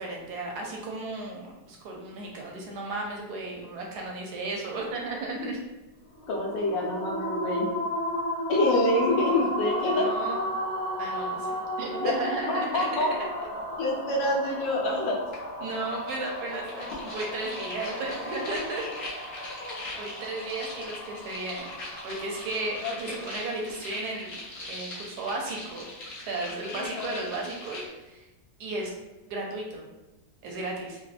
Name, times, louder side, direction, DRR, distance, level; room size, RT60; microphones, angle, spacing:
voice 1, 0.0-5.6 9.9-10.4 11.0-11.5 11.8-13.2 15.6-18.8 20.0-21.7 22.0-25.9 26.3-28.3 28.6-28.9 29.3-29.8 30.4-31.0, right 2 dB, 70° right, -1 dB, 1.0 m, -34 dB
sound 1, 6.1-23.5, equal, 30° left, 0.8 m, -34 dB
voice 2, 6.3-7.7 8.5-10.1 12.0-12.1 12.5-13.1 13.8-15.2 19.4-19.7 20.8-20.9 22.8-23.1 26.7-27.2, left 2 dB, 85° left, -1 dB, 1.4 m, -27 dB
sound 2, 15.3-15.4 15.7-27.9, left 2 dB, 60° left, 1.0 m, -41 dB
4.0 x 2.1 x 2.4 m, 1.0 s
omnidirectional pair, 1.9 m